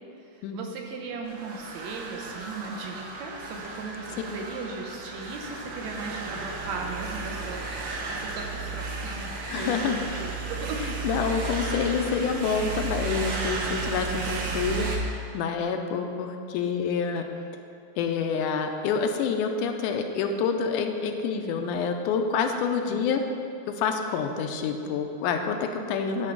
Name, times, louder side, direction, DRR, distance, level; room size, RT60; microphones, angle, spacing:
voice 1, 0.2-7.7 8.1-11.1 22.9-23.1, right 4 dB, 70° right, 1 dB, 1.9 m, -37 dB
sound 1, 1.3-15.0, right 3 dB, 90° right, 1.0 m, -34 dB
voice 2, 9.5-10.0 11.0-17.2 18.0-23.3 23.7-26.3, left 5 dB, 90° left, 5 dB, 2.1 m, -27 dB
11.0 x 4.5 x 6.2 m, 2.5 s
omnidirectional pair, 3.6 m